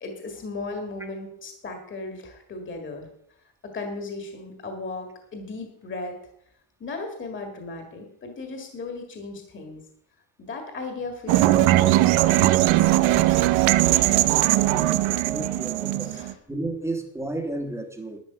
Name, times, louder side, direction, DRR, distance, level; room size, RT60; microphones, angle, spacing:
voice 1, 0.0-3.1 3.6-6.2 6.8-9.8 10.4-13.6 16.0-16.4, left 3 dB, 25° left, 4 dB, 1.8 m, -36 dB
sound 1, 11.3-16.3, right 16 dB, 80° right, 0.8 m, -20 dB
voice 2, 14.7-16.1 16.5-18.2, right 2 dB, 5° right, 4 dB, 1.4 m, -33 dB
11.0 x 10.5 x 5.6 m, 0.72 s
cardioid pair, 155°, 46 cm